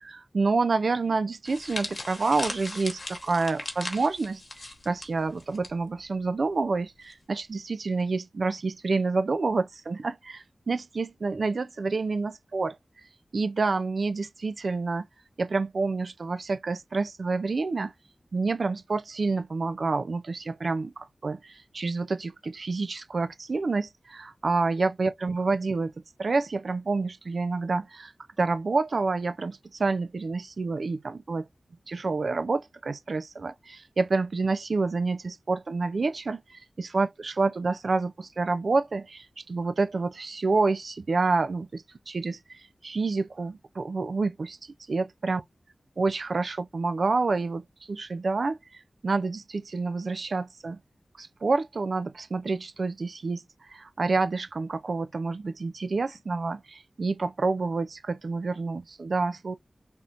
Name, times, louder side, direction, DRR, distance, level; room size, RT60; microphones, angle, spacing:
voice 1, 0.0-4.4 4.9-12.8 13.3-15.1 15.4-17.9 18.3-25.9 26.2-28.1 28.4-31.5 31.9-44.6 44.9-45.4 46.0-48.6 49.0-50.8 51.2-53.4 53.7-59.5, right 3 dB, 70° right, 0.4 m, -28 dB
sound 1, 1.4-5.7 6.0-6.2 7.1-7.4, left 2 dB, 55° left, 1.0 m, -38 dB
3.5 x 2.5 x 2.7 m
wide cardioid pair, 90°, 0 cm